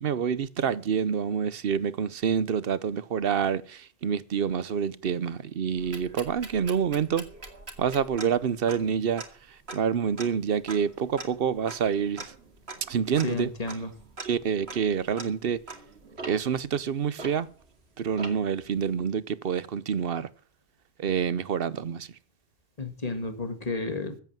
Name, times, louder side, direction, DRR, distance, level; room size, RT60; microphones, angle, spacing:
voice 1, 0.0-7.2 7.8-9.2 9.5-12.3 12.9-13.5 14.2-15.6 16.2-17.5 18.0-20.3 21.0-22.1, right 7 dB, 65° right, 1.0 m, -27 dB
sound 1, 5.8-17.8 18.2-18.6, right 3 dB, 80° right, 2.5 m, -43 dB
voice 2, 13.2-13.9 22.8-24.2, left 3 dB, 35° left, 2.0 m, -32 dB
15.0 x 8.3 x 7.4 m
omnidirectional pair, 1.1 m